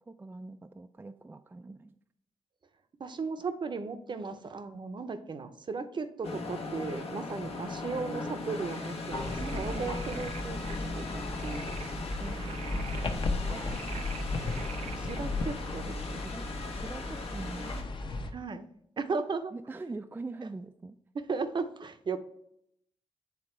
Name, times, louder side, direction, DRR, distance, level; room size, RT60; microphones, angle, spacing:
voice 1, 0.1-2.0 9.4-10.3 12.9-14.3 15.9-17.7 19.5-21.0, right 3 dB, 20° right, 8 dB, 0.3 m, -44 dB
voice 2, 3.0-11.8 12.2-12.6 15.0-16.2 18.3-18.6 19.0-19.5 21.3-22.2, right 4 dB, 45° right, 10 dB, 0.7 m, -36 dB
sound 1, 6.2-17.8, left 3 dB, 70° left, 1.1 m, -39 dB
sound 2, 8.7-15.2, right 9 dB, 90° right, 0.4 m, -48 dB
sound 3, 9.1-18.3, left 2 dB, 50° left, 0.9 m, -35 dB
8.0 x 3.4 x 4.4 m, 0.75 s
cardioid pair, 90°, 11 cm